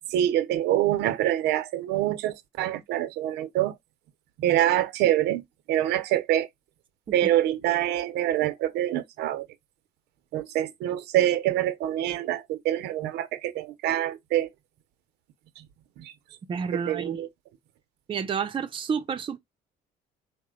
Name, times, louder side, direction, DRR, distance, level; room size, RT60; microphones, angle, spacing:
voice 1, 0.1-3.7 4.4-5.4 5.7-6.5 7.1-9.5 10.3-14.5 16.0-16.1 16.7-17.3, right 13 dB, 85° right, 0.6 m, -25 dB
voice 2, 16.5-17.2 18.1-19.4, right 6 dB, 30° right, 0.6 m, -30 dB
4.1 x 2.1 x 3.7 m
cardioid pair, 110°, 17 cm